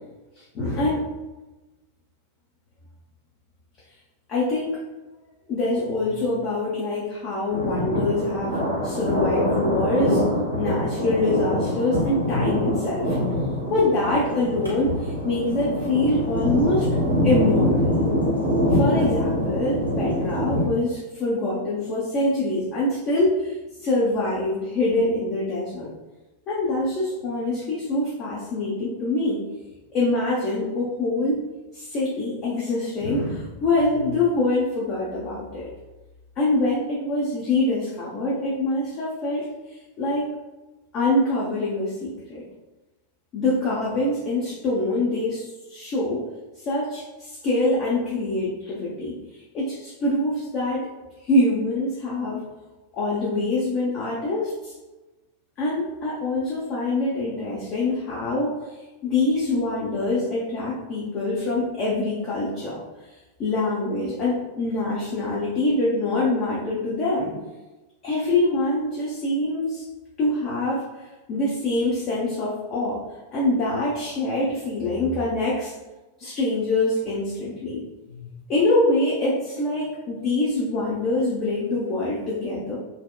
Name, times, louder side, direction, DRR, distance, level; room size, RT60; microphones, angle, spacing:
voice 1, 0.3-1.1 4.3-4.8 5.5-8.6 8.8-10.2 10.6-16.9 17.2-18.0 18.7-25.9 26.5-29.4 29.9-31.4 31.7-35.7 36.4-40.3 40.9-42.4 43.3-46.2 46.6-50.9 51.2-52.4 52.9-54.7 55.6-58.5 59.0-62.8 63.4-67.3 68.0-69.8 70.2-73.0 73.3-75.7 76.2-77.8 78.1-82.8, left 2 dB, 35° left, -6 dB, 0.6 m, -25 dB
Thunder, 7.5-20.7, left 1 dB, 90° right, 0.6 m, -24 dB
2.7 x 2.0 x 2.2 m, 1.1 s
figure-of-eight pair, 90°, 0 cm